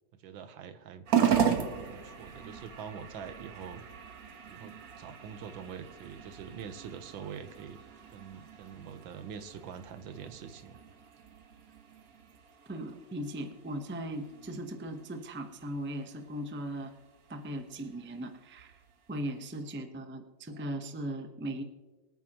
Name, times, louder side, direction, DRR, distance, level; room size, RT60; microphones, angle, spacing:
voice 1, 0.2-1.1 1.7-3.8 4.5-7.8 8.1-10.8, right 7 dB, 85° right, 11 dB, 1.6 m, -44 dB
sound 1, 1.1-19.7, right 8 dB, 55° right, 1.4 m, -37 dB
voice 2, 12.7-16.9 17.3-18.7 19.1-21.6, right 1 dB, 10° right, 6 dB, 0.5 m, -38 dB
24.5 x 9.2 x 3.0 m, 1.3 s
omnidirectional pair, 2.1 m